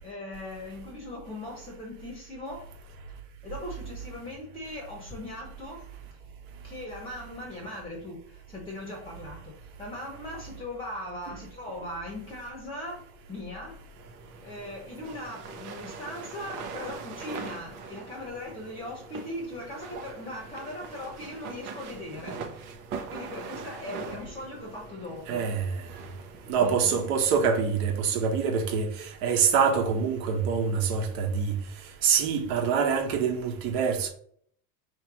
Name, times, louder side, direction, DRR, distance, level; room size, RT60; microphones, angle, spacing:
voice 1, 0.0-2.6 3.4-5.9 6.6-13.0 13.3-13.8 14.4-22.7 23.0-25.5 26.0-26.1 26.6-27.0, left 1 dB, 10° left, 0.8 m, -39 dB
sound 1, 14.0-26.7, right 5 dB, 90° right, 1.0 m, -42 dB
voice 2, 25.3-25.6 26.5-28.9 29.2-31.5 32.0-34.1, right 6 dB, 70° right, 1.2 m, -25 dB
3.2 x 3.2 x 4.7 m
supercardioid pair, 140°, 45 cm